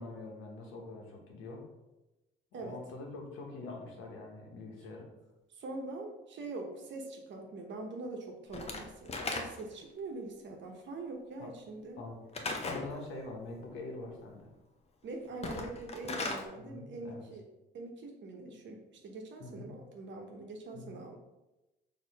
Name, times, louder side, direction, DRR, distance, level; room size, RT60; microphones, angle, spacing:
voice 1, 0.0-1.6 2.5-5.1 11.4-11.5 12.0-12.3 12.6-14.5 16.6-17.3 19.4-19.7 20.7-21.0, left 2 dB, 90° left, 1 dB, 1.1 m, -44 dB
voice 2, 5.5-12.0 15.0-17.4 17.7-21.2, right 2 dB, 65° right, 2 dB, 1.0 m, -43 dB
Slam / Wood, 8.5-9.8 12.3-12.9 15.3-16.5, left 3 dB, 30° left, 0.6 m, -37 dB
4.4 x 2.9 x 4.1 m, 1.0 s
cardioid pair, 90°, 20 cm